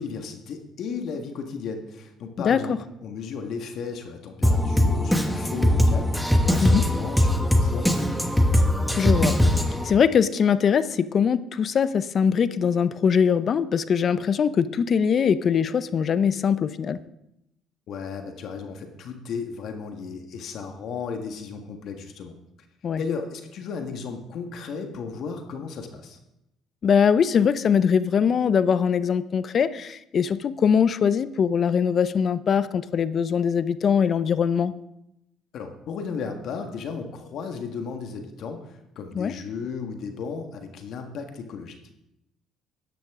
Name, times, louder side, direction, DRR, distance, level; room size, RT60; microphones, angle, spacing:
voice 1, 0.0-2.7 3.0-8.3 17.9-22.4 23.0-26.2 35.5-41.9, left 5 dB, 65° left, 5 dB, 1.6 m, -35 dB
voice 2, 2.4-2.8 6.6-6.9 9.0-9.4 9.8-17.0 22.8-23.0 26.8-34.7 39.2-39.3, left 7 dB, 50° left, 15 dB, 0.6 m, -22 dB
Drum kit, 4.4-9.9, left 1 dB, ahead, 1.3 m, -21 dB
13.0 x 10.0 x 3.7 m, 0.85 s
supercardioid pair, 85°, 0 cm